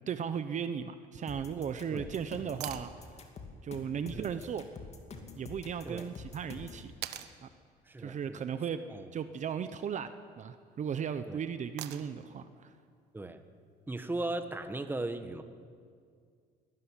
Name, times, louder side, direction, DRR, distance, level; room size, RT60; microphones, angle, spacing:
voice 1, 0.0-3.1 3.6-4.7 5.3-6.9 7.4-7.5 8.0-8.8 9.1-12.7, right 7 dB, 45° right, 10 dB, 0.9 m, -36 dB
sound 1, 1.3-6.8, left 4 dB, 40° left, 2.6 m, -46 dB
sound 2, 2.6-2.9 5.1-5.2 7.0-7.3 9.4-9.8 11.8-12.3 14.4-14.5, right 13 dB, 80° right, 1.2 m, -42 dB
voice 2, 7.9-8.4 8.9-9.1 11.3-11.4 13.1-13.4 13.9-15.4, right 2 dB, 10° right, 9 dB, 1.3 m, -37 dB
22.0 x 13.5 x 10.0 m, 2.1 s
cardioid pair, 110°, 17 cm